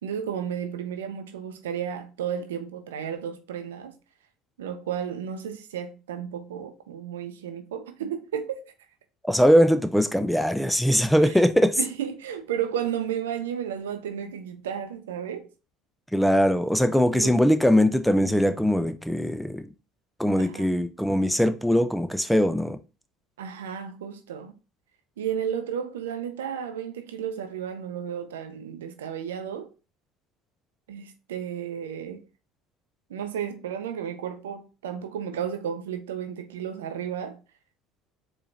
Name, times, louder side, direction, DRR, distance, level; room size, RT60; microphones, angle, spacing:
voice 1, 0.0-3.9 4.6-8.7 11.2-11.5 11.8-15.5 17.1-17.4 20.4-20.8 23.4-24.5 25.2-29.7 30.9-32.2 33.1-37.4, right 8 dB, 85° right, 0.6 m, -33 dB
voice 2, 9.3-11.8 16.1-19.7 20.2-22.8, equal, ahead, 0.5 m, -21 dB
4.5 x 3.2 x 2.6 m
hypercardioid pair, 75°, 0 cm